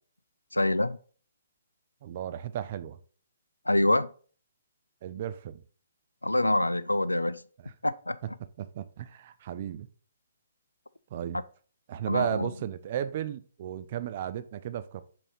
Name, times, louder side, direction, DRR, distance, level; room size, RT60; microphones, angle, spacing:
voice 1, 0.5-1.0 3.7-4.1 6.2-7.4 7.8-8.2 12.1-12.5, left 1 dB, 85° left, 0.4 m, -25 dB
voice 2, 2.0-3.0 5.0-5.6 7.6-7.7 8.2-9.9 11.1-11.4 11.9-15.0, right 10 dB, 40° right, 0.5 m, -34 dB
5.6 x 4.2 x 4.3 m
figure-of-eight pair, 130°, 0 cm